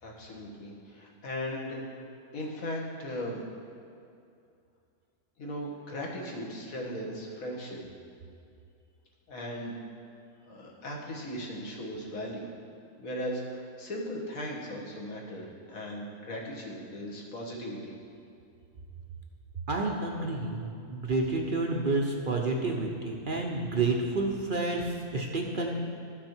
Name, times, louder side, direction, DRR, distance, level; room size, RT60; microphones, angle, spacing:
voice 1, 0.0-1.8 2.3-3.4 5.4-7.8 9.3-9.8 10.5-12.5 13.0-18.0, equal, 65° left, -2 dB, 1.7 m, -37 dB
voice 2, 19.7-25.7, right 3 dB, 45° right, 0 dB, 0.7 m, -29 dB
13.0 x 6.0 x 4.5 m, 2.5 s
omnidirectional pair, 1.6 m